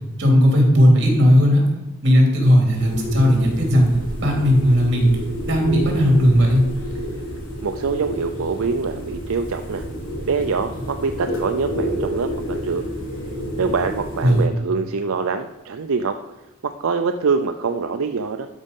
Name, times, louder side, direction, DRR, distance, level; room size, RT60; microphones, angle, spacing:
voice 1, 0.2-1.6 2.0-3.9 4.2-5.1 5.5-6.6 14.2-14.5, equal, 55° right, 0 dB, 2.9 m, -16 dB
sound 1, 2.7-14.5, equal, 80° left, 3.2 m, -29 dB
voice 2, 7.6-9.8 10.3-12.9 13.6-16.2 16.6-18.5, right 5 dB, 85° right, 7 dB, 0.5 m, -24 dB
12.5 x 5.4 x 5.4 m, 1.0 s
head